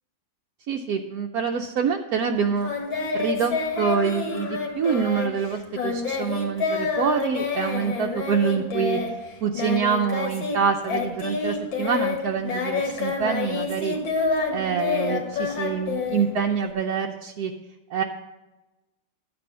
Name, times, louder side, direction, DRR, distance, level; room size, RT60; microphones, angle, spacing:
voice 1, 0.7-2.7 3.1-14.2 14.5-17.5 17.9-18.0, right 6 dB, 70° right, 2 dB, 0.9 m, -26 dB
Singing, 2.6-10.6 10.8-16.7, left 4 dB, 85° left, 2.4 m, -28 dB
12.0 x 7.9 x 5.5 m, 1.1 s
omnidirectional pair, 2.1 m